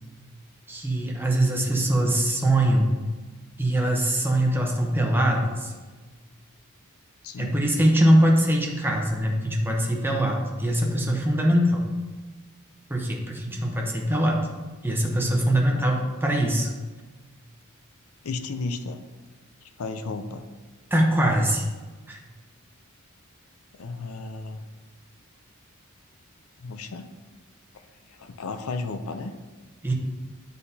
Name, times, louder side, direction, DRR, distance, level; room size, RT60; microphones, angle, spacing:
voice 1, 0.7-3.0 3.6-5.7 7.4-11.9 12.9-14.5 14.8-16.7 20.9-21.7 22.1-22.2 29.8-29.9, right 1 dB, 10° right, 0 dB, 0.8 m, -22 dB
voice 2, 7.2-7.6 15.7-15.8 18.2-19.0 19.6-20.5 23.7-24.6 26.6-27.1 28.2-29.3, left 3 dB, 75° left, 8 dB, 0.5 m, -34 dB
9.6 x 4.0 x 2.8 m, 1.3 s
head